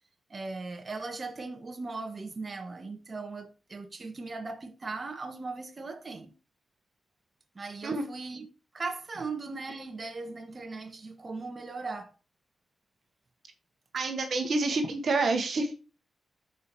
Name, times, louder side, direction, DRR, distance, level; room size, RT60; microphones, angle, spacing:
voice 1, 0.3-6.3 7.6-8.5 8.7-12.1, right 3 dB, 45° right, 1.6 m, -38 dB
voice 2, 13.9-15.7, right 3 dB, 70° right, 1.4 m, -28 dB
13.5 x 5.1 x 2.9 m
cardioid pair, 55°, 0 cm